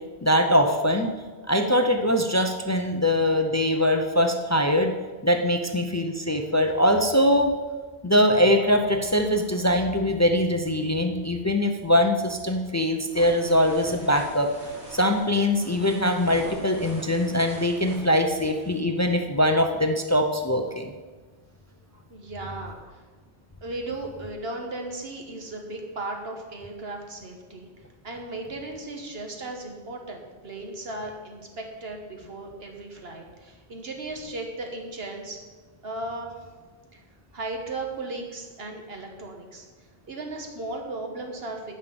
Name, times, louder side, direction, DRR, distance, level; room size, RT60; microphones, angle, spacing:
voice 1, 0.2-1.1 1.5-4.9 5.2-7.5 8.0-14.5 14.9-20.9, left 1 dB, 20° left, 5 dB, 0.4 m, -22 dB
sound 1, 12.9-18.8, right 1 dB, 85° right, 2.8 m, -43 dB
voice 2, 22.1-23.0 23.6-27.7 28.0-35.4 35.8-36.5 36.9-37.0 37.3-39.7 40.1-41.7, right 2 dB, 65° right, 2 dB, 1.4 m, -36 dB
10.0 x 5.6 x 6.9 m, 1.4 s
omnidirectional pair, 1.1 m